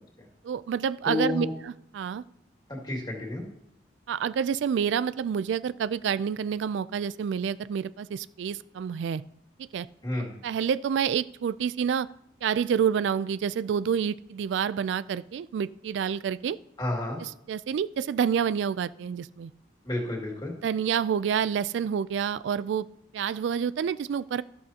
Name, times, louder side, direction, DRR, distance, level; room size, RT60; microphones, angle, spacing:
voice 1, 0.4-2.2 4.1-9.2 9.6-9.9 10.4-12.1 12.4-16.6 17.5-19.5 20.6-22.9 23.1-24.4, right 7 dB, 80° right, 17 dB, 0.3 m, -28 dB
voice 2, 1.0-1.5 2.7-3.4 10.0-10.4 16.8-17.2 19.8-20.5, left 2 dB, 25° left, -1 dB, 2.2 m, -30 dB
13.0 x 11.5 x 2.8 m, 0.76 s
head